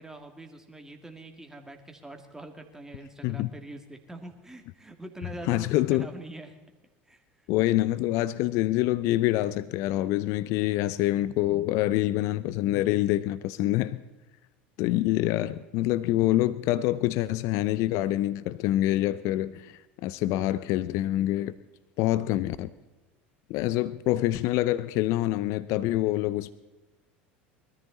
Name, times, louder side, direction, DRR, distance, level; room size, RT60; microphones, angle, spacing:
voice 1, 0.0-6.6 7.1-7.2, right 1 dB, 10° right, 5 dB, 2.5 m, -44 dB
voice 2, 5.5-6.1 7.5-14.0 14.8-21.5 22.0-22.7 23.5-26.5, left 15 dB, 60° left, 17 dB, 0.6 m, -26 dB
21.0 x 14.0 x 4.2 m, 1.1 s
hypercardioid pair, 80°, 6 cm